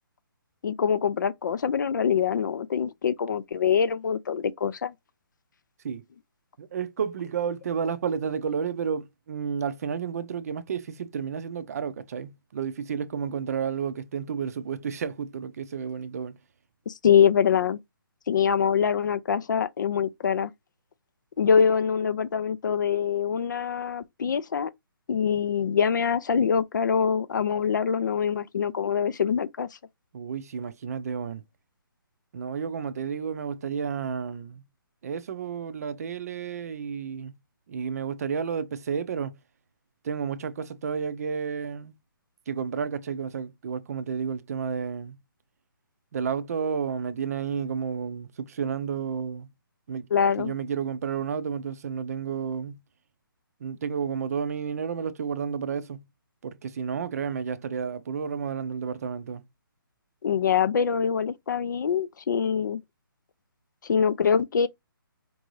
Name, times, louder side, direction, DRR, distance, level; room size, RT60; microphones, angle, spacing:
voice 1, 0.6-4.9 16.9-17.8 18.3-20.5 21.4-24.7 25.1-29.7 50.1-50.5 60.2-62.8 63.8-64.7, left 7 dB, 55° left, 0.4 m, -24 dB
voice 2, 6.6-16.4 30.1-31.4 32.3-34.6 35.0-37.4 37.7-39.4 40.0-41.9 42.5-45.2 46.1-49.5 49.9-50.1 50.4-52.8 53.6-56.1 56.4-59.4, right 7 dB, 45° right, 0.5 m, -31 dB
4.5 x 2.6 x 3.1 m
hypercardioid pair, 160°, 12 cm